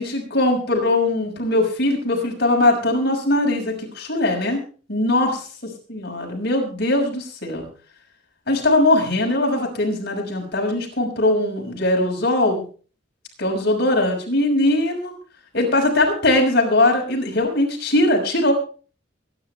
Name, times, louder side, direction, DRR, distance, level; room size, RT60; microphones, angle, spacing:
voice 1, 0.0-4.6 4.9-5.3 5.9-7.6 8.5-12.6 13.4-15.1 15.5-18.5, left 1 dB, 55° left, 0 dB, 6.0 m, -20 dB
23.5 x 11.0 x 3.4 m, 0.39 s
head